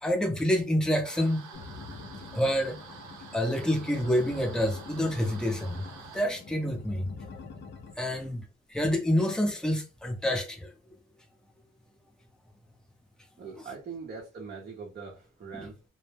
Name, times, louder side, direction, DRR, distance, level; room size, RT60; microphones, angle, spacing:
voice 1, 0.0-1.5 2.3-2.8 3.3-5.9 6.1-7.1 8.0-8.4 8.7-10.7 15.6-15.7, equal, ahead, 0.7 m, -27 dB
sound 1, 1.0-6.2, right 5 dB, 75° right, 0.7 m, -48 dB
sound 2, 1.5-7.9, left 4 dB, 40° left, 0.5 m, -46 dB
voice 2, 13.4-15.8, right 5 dB, 35° right, 0.7 m, -42 dB
2.1 x 2.1 x 3.1 m
cardioid pair, 90°, 30 cm